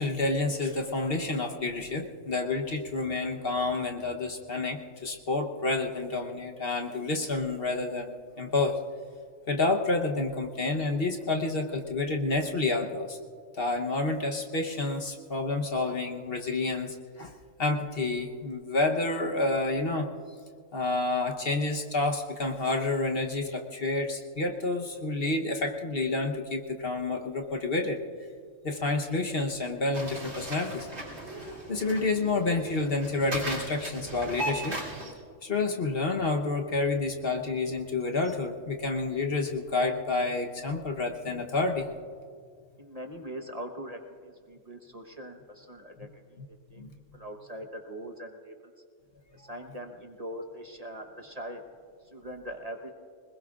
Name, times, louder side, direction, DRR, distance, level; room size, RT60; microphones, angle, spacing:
voice 1, 0.0-8.8 9.5-13.2 13.5-17.3 17.6-20.1 20.7-28.0 28.6-30.9 31.3-34.8 35.4-41.9 46.8-46.9, left 3 dB, 50° left, 2 dB, 1.2 m, -29 dB
sound 1, 29.9-35.1, right 1 dB, 80° right, 3.6 m, -37 dB
voice 2, 42.8-46.4 46.7-46.8 47.1-48.5 49.3-51.6 52.1-52.9, equal, 30° right, 3 dB, 1.1 m, -41 dB
25.5 x 20.5 x 2.5 m, 2.2 s
omnidirectional pair, 1.3 m